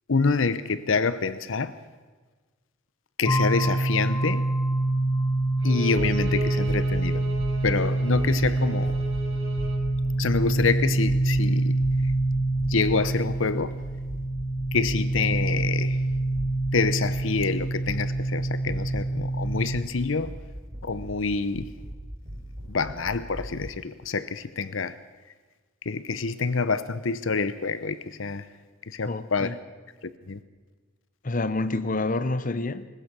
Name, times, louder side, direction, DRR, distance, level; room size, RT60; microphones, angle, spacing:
voice 1, 0.1-1.8 3.2-4.5 5.6-7.2 7.6-9.0 10.2-12.1 12.6-13.8 14.7-16.0 16.7-20.4 20.8-21.7 22.7-25.0 25.8-28.5 28.8-29.6 30.0-30.4, left 4 dB, 70° left, 15 dB, 0.8 m, -27 dB
sound 1, 3.3-19.8, right 2 dB, 15° left, 1.0 m, -26 dB
sound 2, 5.5-5.7 5.9-13.6 13.8-18.1 18.4-21.2 21.5-23.6, equal, 45° right, 6.8 m, -39 dB
Bowed string instrument, 5.6-9.9, right 1 dB, 80° right, 5.5 m, -37 dB
voice 2, 29.1-29.6 31.2-32.9, left 2 dB, 40° left, 13 dB, 0.9 m, -28 dB
21.5 x 19.5 x 6.2 m, 1.3 s
head